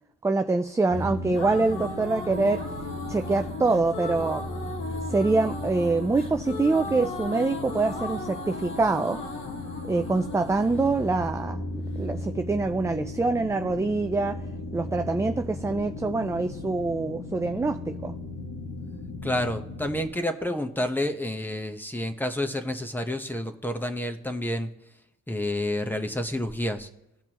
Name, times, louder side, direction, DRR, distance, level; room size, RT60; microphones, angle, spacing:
voice 1, 0.2-2.6 3.1-4.4 5.1-9.2 9.8-14.4 14.7-18.1, right 3 dB, 10° right, 6 dB, 0.4 m, -25 dB
sound 1, 0.9-20.1, left 2 dB, 60° left, 1.6 m, -36 dB
sound 2, 1.0-12.0, left 2 dB, 45° left, 1.8 m, -37 dB
voice 2, 19.2-24.7 25.3-26.9, left 1 dB, 5° left, 6 dB, 1.1 m, -29 dB
17.0 x 5.9 x 3.0 m, 0.88 s
cardioid pair, 90°, 30 cm